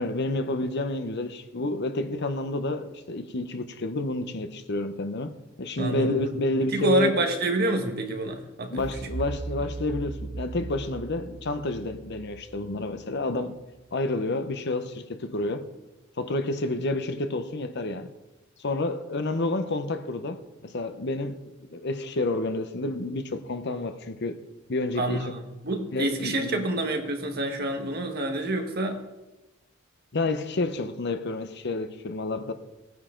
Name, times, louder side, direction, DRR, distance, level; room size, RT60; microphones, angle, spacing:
voice 1, 0.0-7.1 8.7-13.6 13.9-15.7 16.2-18.1 18.6-24.4 24.7-25.2 25.9-26.7 30.1-32.5, left 2 dB, 60° left, 0.9 m, -29 dB
voice 2, 5.8-6.2 6.7-8.8 25.0-29.0, right 1 dB, 50° right, 1.5 m, -27 dB
sound 1, 8.8-13.6, right 2 dB, 30° right, 0.5 m, -38 dB
18.5 x 9.5 x 3.8 m
head